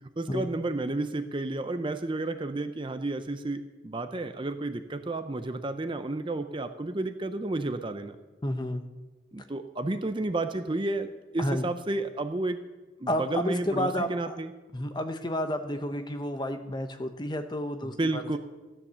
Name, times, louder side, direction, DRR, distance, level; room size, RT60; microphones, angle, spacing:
voice 1, 0.2-8.2 9.3-12.6 13.0-14.5 17.8-18.4, right 2 dB, 25° right, 9 dB, 0.6 m, -31 dB
voice 2, 8.4-8.8 11.4-11.7 13.1-14.3 14.7-18.4, left 1 dB, 20° left, 7 dB, 0.8 m, -31 dB
14.5 x 9.9 x 6.9 m, 1.2 s
head